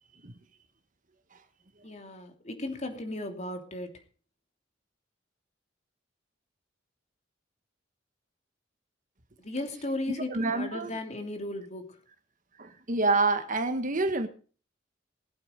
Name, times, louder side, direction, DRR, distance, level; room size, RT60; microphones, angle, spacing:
voice 1, 1.8-3.9 9.4-12.0, left 1 dB, 35° left, 3.0 m, -36 dB
voice 2, 10.3-11.0 12.6-14.3, right 3 dB, 45° right, 1.4 m, -27 dB
20.5 x 8.7 x 5.1 m
head